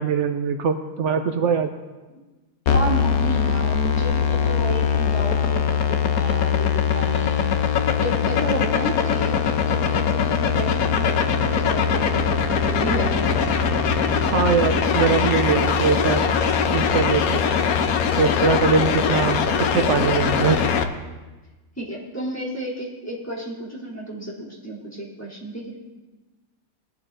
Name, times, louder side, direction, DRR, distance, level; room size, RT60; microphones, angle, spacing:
voice 1, 0.0-1.7 14.3-16.2 16.7-17.4 18.1-20.6, right 5 dB, 90° right, 6 dB, 0.6 m, -22 dB
sound 1, 2.7-20.8, left 6 dB, 60° left, 1.0 m, -21 dB
voice 2, 2.7-13.6 21.8-25.8, right 1 dB, 10° left, -6 dB, 3.0 m, -32 dB
20.5 x 12.0 x 2.6 m, 1.2 s
omnidirectional pair, 2.0 m